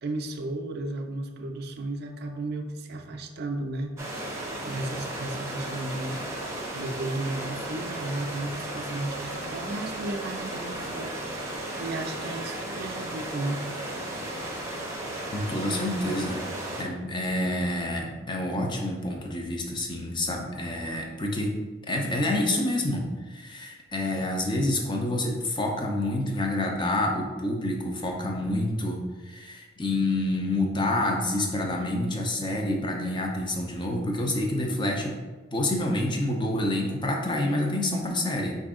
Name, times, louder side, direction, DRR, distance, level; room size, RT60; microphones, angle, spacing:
voice 1, 0.0-4.3 4.7-6.2 6.7-11.2 11.4-14.0, right 2 dB, 55° right, 4 dB, 0.4 m, -34 dB
sound 1, 4.0-16.8, right 1 dB, 15° right, 0.7 m, -35 dB
voice 2, 15.3-16.5 16.8-21.5 21.9-35.2 35.5-38.6, left 1 dB, 25° left, 1 dB, 0.5 m, -28 dB
4.8 x 2.6 x 3.6 m, 1.3 s
head